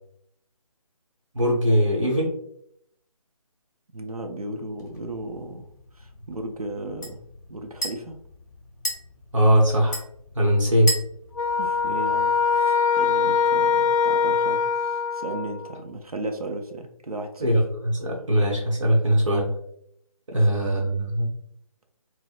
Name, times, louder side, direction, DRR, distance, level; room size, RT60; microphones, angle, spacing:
voice 1, 1.3-2.3 9.3-10.0 10.3-10.9 17.4-19.5 20.3-21.3, equal, 60° right, -1 dB, 0.8 m, -21 dB
voice 2, 3.9-5.7 5.9-7.2 7.5-8.2 11.6-17.5 20.3-20.7, right 2 dB, 80° right, 3 dB, 0.6 m, -35 dB
sound 1, 4.8-12.6, right 1 dB, 30° left, 0.8 m, -37 dB
sound 2, 11.4-15.8, left 6 dB, 70° left, 0.5 m, -22 dB
4.3 x 2.0 x 2.4 m, 0.70 s
figure-of-eight pair, 155°, 19 cm